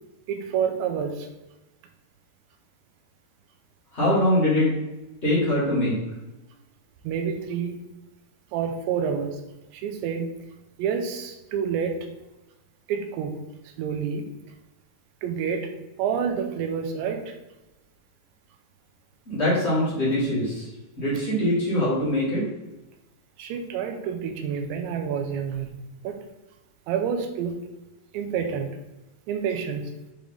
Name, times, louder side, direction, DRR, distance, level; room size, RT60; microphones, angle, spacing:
voice 1, 0.3-1.3 7.0-7.8 8.5-9.4 9.7-10.3 10.8-12.1 12.9-13.4 13.8-14.3 15.2-15.7 16.0-17.3 23.4-25.7 26.0-26.2 26.9-27.6 28.1-28.8 29.3-29.9, right 7 dB, 85° right, 5 dB, 2.9 m, -28 dB
voice 2, 3.9-4.7 5.2-5.9 19.3-20.7 21.0-22.4, left 1 dB, 45° left, -9 dB, 0.8 m, -23 dB
7.4 x 3.5 x 3.8 m, 1.0 s
omnidirectional pair, 5.3 m